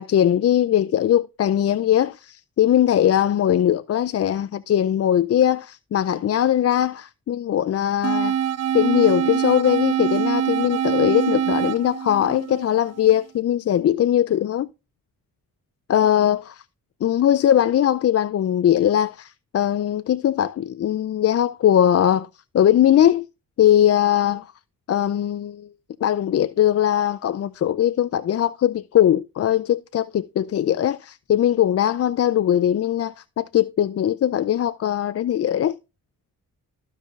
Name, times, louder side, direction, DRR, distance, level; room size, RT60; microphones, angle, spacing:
voice 1, 0.0-8.4 8.7-14.7 15.9-16.6 17.0-22.3 22.5-23.3 23.6-24.5 24.9-25.7 26.0-35.8, left 11 dB, 45° left, 0.4 m, -20 dB
sound 1, 8.0-13.1, right 8 dB, 45° right, 0.6 m, -24 dB
14.0 x 5.3 x 2.4 m
cardioid pair, 60°, 35 cm